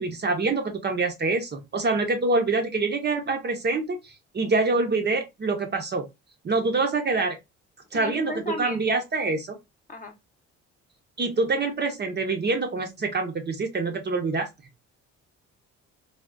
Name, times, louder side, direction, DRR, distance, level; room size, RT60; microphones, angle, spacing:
voice 1, 0.0-4.0 4.3-6.1 6.4-7.4 7.9-9.6 11.2-14.5, right 3 dB, 35° right, 0.7 m, -25 dB
voice 2, 7.9-9.0 9.9-10.1, left 2 dB, 25° left, 0.8 m, -35 dB
3.4 x 2.3 x 2.3 m
cardioid pair, 90°, 30 cm